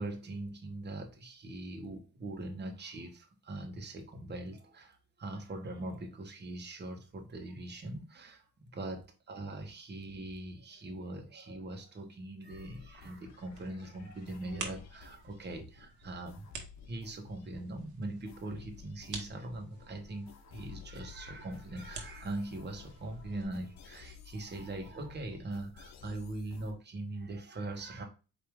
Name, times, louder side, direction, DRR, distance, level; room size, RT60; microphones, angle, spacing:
voice 1, 0.0-9.0 9.3-16.5 16.9-28.0, right 2 dB, 35° right, 1.3 m, -41 dB
sound 1, 12.4-26.7, left 7 dB, 65° left, 0.8 m, -54 dB
sound 2, 13.3-23.4, right 5 dB, 75° right, 1.3 m, -50 dB
4.6 x 2.9 x 3.6 m
cardioid pair, 90°, 30 cm